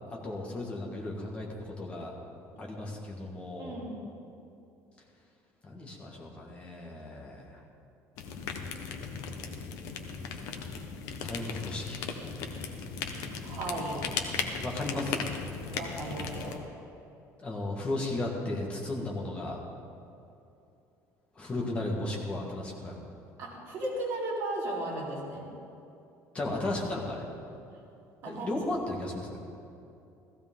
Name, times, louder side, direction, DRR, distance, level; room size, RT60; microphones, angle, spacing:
voice 1, 0.1-2.1 2.6-3.7 5.6-7.6 11.2-12.0 14.6-15.2 17.4-19.6 21.4-23.0 26.3-27.2 28.2-29.4, left 2 dB, 20° left, -2 dB, 1.8 m, -35 dB
voice 2, 3.6-4.0 13.4-14.1 14.4-14.5 15.7-16.6 23.4-25.4 28.2-28.5, right 1 dB, 40° right, -7 dB, 4.1 m, -35 dB
sound 1, 8.2-16.6, left 5 dB, 70° left, 1.1 m, -37 dB
15.5 x 15.0 x 3.8 m, 2.7 s
cardioid pair, 175°, 6 cm